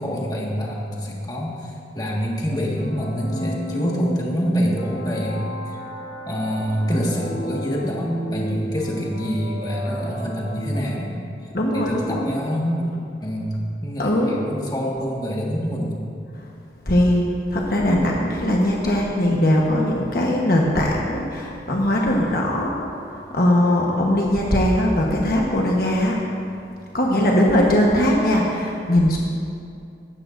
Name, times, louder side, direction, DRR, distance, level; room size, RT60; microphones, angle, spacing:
voice 1, 0.0-5.8 6.3-11.2 11.7-12.9 13.2-16.0, equal, 20° left, -3 dB, 1.7 m, -26 dB
sound 1, 2.8-11.4, equal, 75° left, 1.1 m, -35 dB
voice 2, 11.5-12.3 14.0-14.3 16.9-22.7 23.0-26.2 26.9-29.2, left 1 dB, 55° left, -2 dB, 1.2 m, -20 dB
17.0 x 13.0 x 2.6 m, 2.5 s
head